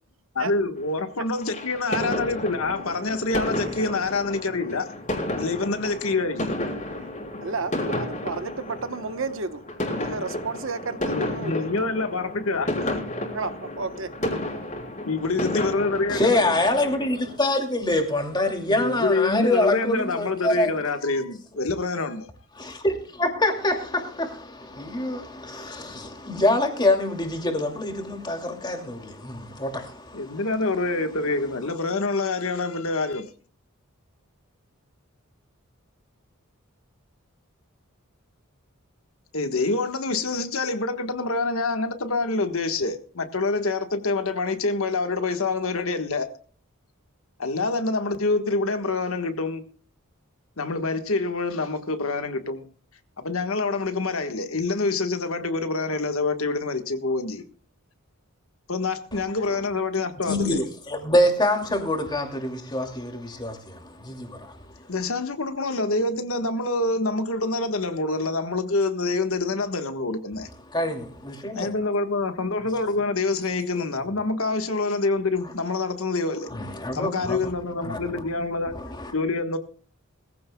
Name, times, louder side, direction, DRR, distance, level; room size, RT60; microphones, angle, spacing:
voice 1, 0.3-4.9 5.4-6.5 11.1-12.7 15.1-16.5 18.7-22.3 30.1-33.3 39.3-46.3 47.4-49.6 50.6-52.6 53.2-57.4 58.7-60.6 64.9-70.5 71.5-76.5 76.9-78.7 79.1-79.6, left 3 dB, 75° left, 1.5 m, -26 dB
sound 1, 1.3-17.4, left 1 dB, 35° left, 3.6 m, -32 dB
voice 2, 7.4-9.6 10.0-11.7 13.3-14.1, right 4 dB, 65° right, 1.1 m, -32 dB
voice 3, 16.1-20.7 22.5-30.5 59.1-59.2 60.2-64.9 70.7-71.7 73.7-73.8 75.4-75.5 76.5-77.5 77.8-78.2 78.7-79.1, left 1 dB, 20° left, 2.6 m, -26 dB
21.5 x 15.5 x 2.3 m
head